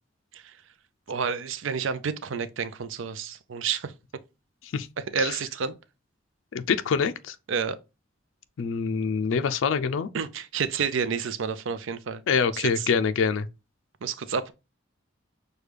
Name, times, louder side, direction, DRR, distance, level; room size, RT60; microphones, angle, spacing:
voice 1, 1.1-3.9 5.0-5.7 7.5-7.8 10.1-12.2 12.5-12.6 14.0-14.5, right 6 dB, 75° right, 0.5 m, -29 dB
voice 2, 6.5-7.4 8.6-10.1 12.3-13.5, left 6 dB, 75° left, 0.4 m, -25 dB
6.4 x 2.2 x 3.3 m
head